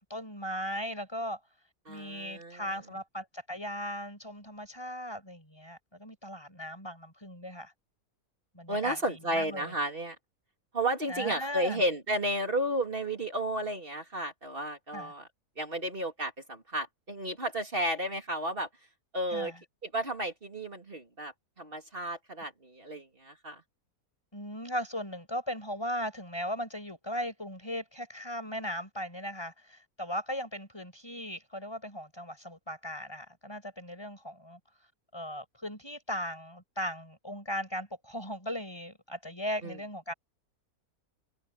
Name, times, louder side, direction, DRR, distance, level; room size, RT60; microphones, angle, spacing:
voice 1, 0.0-1.4 1.9-7.7 8.5-9.7 11.1-11.8 14.9-15.1 19.3-19.6 24.3-34.6 35.1-40.1, equal, 15° left, 7.0 m, -38 dB
voice 2, 1.8-2.7 8.7-10.1 10.7-15.3 15.6-18.7 19.1-19.5 19.8-23.6 39.6-39.8, right 1 dB, 35° right, 3.4 m, -33 dB
omnidirectional pair, 1.6 m